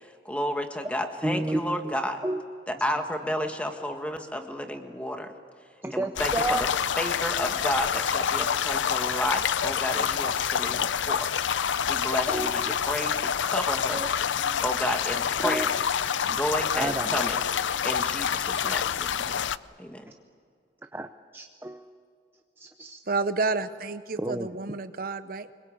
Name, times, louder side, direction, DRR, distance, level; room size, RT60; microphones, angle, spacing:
voice 1, 0.0-2.2 2.7-5.3 5.9-6.6 7.0-11.3 11.9-14.0 14.6-15.7 16.3-17.4 17.8-19.5 19.8-20.1, equal, 5° left, 5 dB, 1.6 m, -32 dB
voice 2, 1.2-1.9 2.2-2.4 5.8-6.7 12.3-12.8 13.9-14.1 14.5-14.6 15.4-15.7 16.7-17.2 20.9-21.9 22.6-23.0 24.2-24.5, right 1 dB, 10° right, 7 dB, 0.6 m, -31 dB
sound 1, 6.2-19.6, left 8 dB, 85° left, 0.5 m, -27 dB
voice 3, 23.1-25.5, right 3 dB, 50° right, 11 dB, 0.7 m, -30 dB
25.0 x 22.0 x 8.6 m, 2.2 s
head